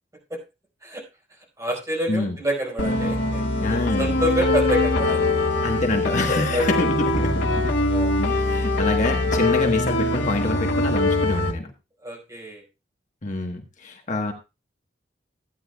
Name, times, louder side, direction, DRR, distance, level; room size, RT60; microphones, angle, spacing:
voice 1, 1.6-3.4 3.7-5.3 6.5-6.6 7.9-8.1 12.0-12.6, equal, 20° right, -1 dB, 4.7 m, -27 dB
sound 1, 2.8-11.5, left 2 dB, 80° left, 2.1 m, -23 dB
voice 2, 3.6-4.2 5.6-7.7 8.2-11.7 13.2-14.3, left 2 dB, 45° left, 3 dB, 1.4 m, -26 dB
15.0 x 10.0 x 2.3 m, 0.27 s
head